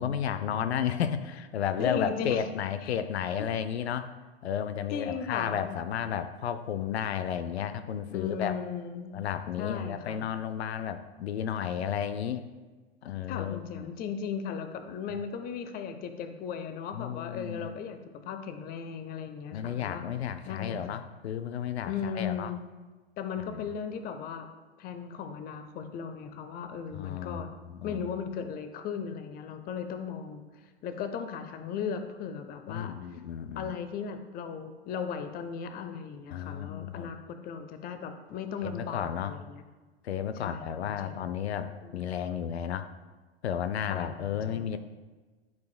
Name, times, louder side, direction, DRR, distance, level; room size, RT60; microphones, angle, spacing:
voice 1, 0.0-4.1 4.4-8.6 9.1-12.4 13.0-13.9 16.9-17.7 19.5-22.5 23.5-23.6 26.9-28.0 32.7-33.7 36.3-37.1 38.6-39.3 40.0-42.9 43.4-44.8, left 9 dB, 75° left, 11 dB, 0.5 m, -33 dB
voice 2, 1.8-2.4 2.8-2.9 4.9-5.8 8.1-9.1 9.6-10.3 13.3-20.0 20.4-20.8 21.8-22.7 23.2-24.5 24.8-27.6 27.8-30.4 30.8-33.2 33.5-39.6 40.4-41.2 41.8-42.0 43.9-44.1 44.5-44.7, left 6 dB, 30° left, 8 dB, 0.6 m, -37 dB
12.0 x 4.8 x 2.2 m, 1.3 s
hypercardioid pair, 105°, 32 cm